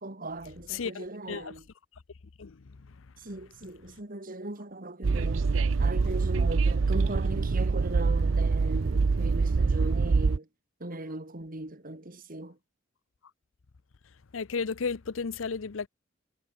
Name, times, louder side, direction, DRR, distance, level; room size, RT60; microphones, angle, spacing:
voice 1, 0.0-1.7 3.2-5.5 5.8-10.5 10.8-12.6, right 2 dB, 45° right, 2.5 m, -38 dB
voice 2, 0.7-1.5 2.4-2.8 14.3-15.9, left 5 dB, 75° left, 0.7 m, -33 dB
Train, 5.0-10.4, right 4 dB, 70° right, 0.6 m, -25 dB
head